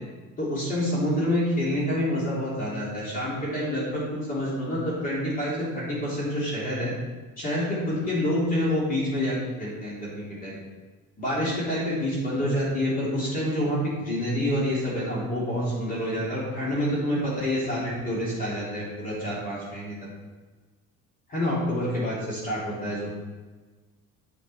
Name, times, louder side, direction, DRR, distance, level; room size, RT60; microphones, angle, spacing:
voice 1, 0.4-6.9 7.4-10.6 11.2-20.0 21.3-23.1, equal, 25° left, -7 dB, 3.4 m, -27 dB
9.4 x 6.5 x 5.7 m, 1.3 s
cardioid pair, 170°, 33 cm